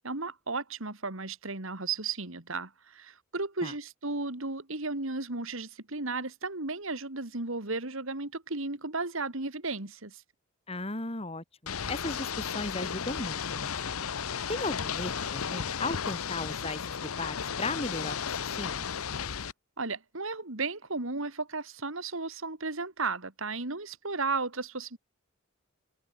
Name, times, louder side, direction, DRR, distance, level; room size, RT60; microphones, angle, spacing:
voice 1, 0.0-10.2 19.8-25.0, right 3 dB, 65° right, 2.5 m, -34 dB
voice 2, 10.7-13.7 14.5-18.9, left 2 dB, 25° left, 2.4 m, -36 dB
Ocean / Boat Water vehicle, 11.7-19.5, left 7 dB, 80° left, 0.9 m, -34 dB
head